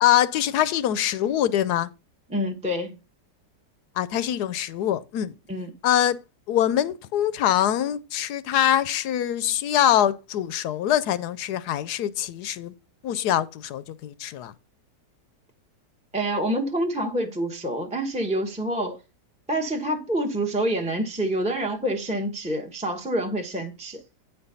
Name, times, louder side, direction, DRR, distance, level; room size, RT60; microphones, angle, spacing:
voice 1, 0.0-1.9 4.0-5.3 5.8-6.2 6.5-12.7 13.0-14.5, left 11 dB, 70° left, 1.1 m, -23 dB
voice 2, 2.3-2.9 5.5-5.7 16.1-19.0 19.5-24.0, right 1 dB, 5° right, 0.7 m, -27 dB
9.1 x 4.4 x 5.5 m
omnidirectional pair, 1.9 m